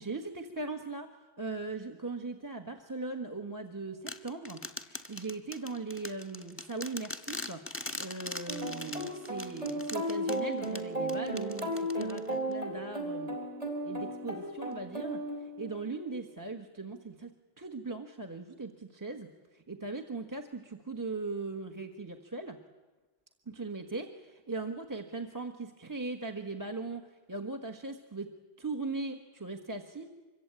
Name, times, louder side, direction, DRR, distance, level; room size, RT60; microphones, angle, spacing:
voice 1, 0.0-7.7 8.0-13.3 13.8-22.6 23.5-28.3 28.6-30.1, right 3 dB, 20° right, 6 dB, 1.3 m, -39 dB
sound 1, 4.1-12.5, left 2 dB, 10° left, 1.4 m, -42 dB
sound 2, 8.5-15.9, right 1 dB, 35° right, 4.3 m, -35 dB
25.5 x 23.0 x 8.9 m, 1.3 s
omnidirectional pair, 1.1 m